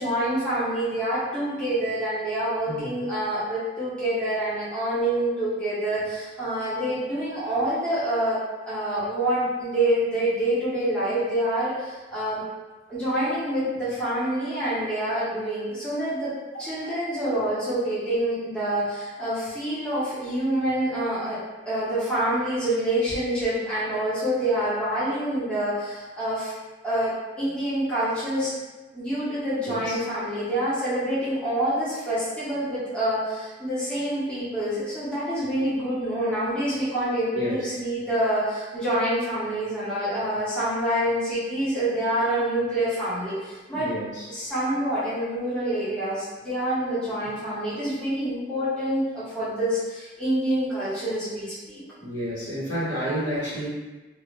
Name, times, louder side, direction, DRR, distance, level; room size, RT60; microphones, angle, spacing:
voice 1, 0.0-12.4 12.9-16.3 16.6-21.4 21.6-26.5 26.8-28.5 28.9-43.9 44.3-51.8, right 1 dB, 5° left, -12 dB, 0.9 m, -26 dB
voice 2, 2.6-3.0 16.8-17.0 29.7-30.0 37.3-37.6 43.7-44.3 52.0-53.7, equal, 80° left, -9 dB, 1.2 m, -30 dB
2.5 x 2.4 x 3.1 m, 1.2 s
head